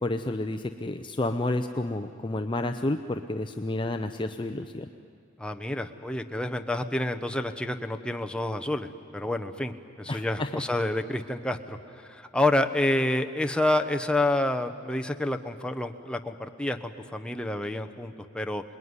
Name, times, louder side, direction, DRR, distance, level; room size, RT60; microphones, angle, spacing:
voice 1, 0.0-4.9 10.1-10.6, left 2 dB, 25° left, 7 dB, 0.6 m, -30 dB
voice 2, 5.4-8.9 9.1-11.8 12.1-18.6, left 1 dB, 5° left, 5 dB, 1.0 m, -28 dB
27.5 x 20.5 x 9.7 m, 2.4 s
head